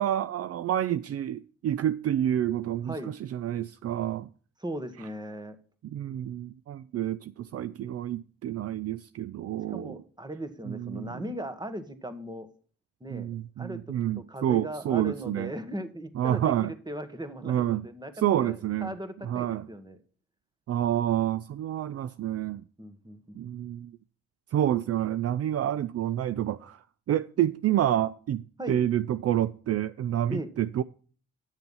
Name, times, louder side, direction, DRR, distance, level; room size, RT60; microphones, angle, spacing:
voice 1, 0.0-4.3 5.8-10.0 10.7-11.2 13.1-15.5 16.2-16.7 17.4-17.9 18.2-18.9 19.2-19.7 20.7-22.6 23.4-24.0 24.5-30.8, right 11 dB, 55° right, 0.5 m, -28 dB
voice 2, 4.6-5.6 9.7-12.5 13.0-13.3 13.6-20.0 22.8-23.4 28.6-28.8 30.3-30.5, right 1 dB, 15° right, 1.7 m, -38 dB
9.8 x 6.8 x 5.5 m
supercardioid pair, 60°, 29 cm